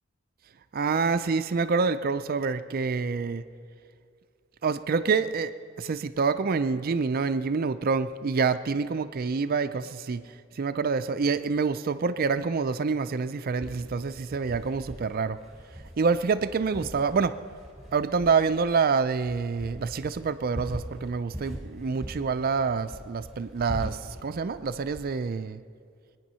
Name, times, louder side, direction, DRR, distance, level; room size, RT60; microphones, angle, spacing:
voice 1, 0.7-3.4 4.6-15.4 16.0-17.3 17.9-25.6, right 5 dB, 45° right, 11 dB, 0.4 m, -27 dB
sound 1, 13.6-25.0, equal, ahead, 3.9 m, -42 dB
22.5 x 9.6 x 5.6 m, 2.3 s
head